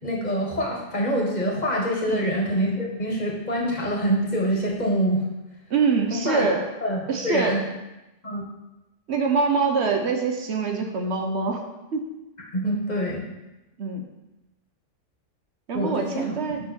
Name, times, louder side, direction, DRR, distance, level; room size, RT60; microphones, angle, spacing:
voice 1, 0.0-5.2 6.1-6.4 6.8-7.6 8.2-8.4 12.5-13.2 15.7-16.3, equal, 35° left, -1 dB, 1.4 m, -25 dB
voice 2, 5.7-6.7 7.1-7.6 9.1-11.6 11.9-12.0 13.8-14.1 15.7-16.6, right 4 dB, 65° right, 4 dB, 1.0 m, -24 dB
6.7 x 5.7 x 4.4 m, 0.99 s
omnidirectional pair, 1.3 m